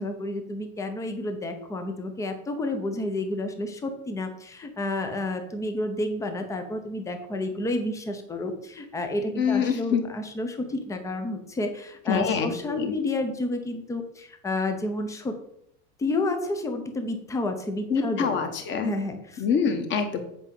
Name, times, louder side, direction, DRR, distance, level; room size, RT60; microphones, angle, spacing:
voice 1, 0.0-15.3 16.0-18.4 18.8-19.4, left 2 dB, 5° left, 6 dB, 0.6 m, -30 dB
voice 2, 9.4-10.0 12.1-12.9 17.9-18.9 19.4-20.2, left 6 dB, 25° left, 6 dB, 1.1 m, -25 dB
8.2 x 5.1 x 7.4 m, 0.74 s
supercardioid pair, 165°, 48 cm